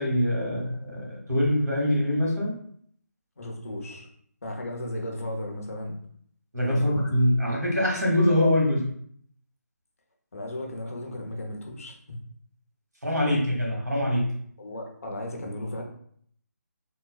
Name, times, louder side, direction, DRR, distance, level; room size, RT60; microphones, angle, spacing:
voice 1, 0.0-2.5 6.5-8.8 13.0-14.2, left 1 dB, 85° right, -2 dB, 1.3 m, -24 dB
voice 2, 3.4-4.1 4.4-6.0 6.7-6.9 10.3-11.9 14.6-15.8, left 1 dB, 55° left, 1 dB, 0.7 m, -35 dB
3.9 x 2.1 x 2.3 m, 0.62 s
figure-of-eight pair, 155°, 9 cm